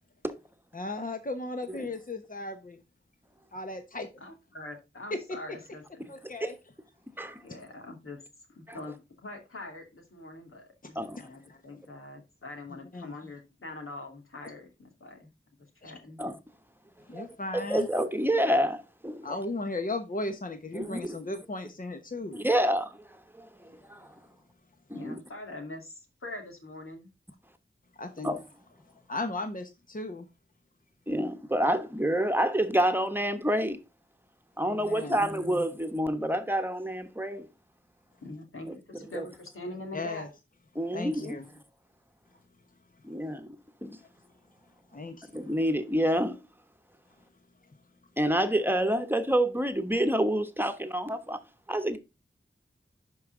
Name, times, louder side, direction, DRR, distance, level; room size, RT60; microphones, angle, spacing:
voice 1, 0.7-2.8 3.5-4.1 5.1-5.6 6.1-6.5 7.5-7.6 11.2-11.6 12.9-13.1 15.8-15.9 17.1-17.9 19.2-22.4 28.0-28.3 29.1-30.3 34.6-35.2 39.9-40.3 40.9-41.5 44.9-45.3, left 2 dB, 40° left, 1.0 m, -36 dB
voice 2, 4.2-6.1 7.4-8.2 8.5-15.3 15.8-16.2 24.9-27.1 35.1-35.6 38.2-40.2 41.1-41.4, left 2 dB, 85° left, 2.5 m, -43 dB
voice 3, 17.5-19.4 20.7-21.2 22.3-23.0 23.3-23.5 23.9-24.1 24.9-25.2 28.2-28.4 31.1-33.8 34.6-37.5 38.7-38.8 39.1-39.2 40.7-41.4 43.0-43.5 43.8-44.0 45.3-46.4 48.2-51.4 51.7-52.0, right 1 dB, 10° right, 1.1 m, -28 dB
11.5 x 4.8 x 3.7 m
wide cardioid pair, 55°, 21 cm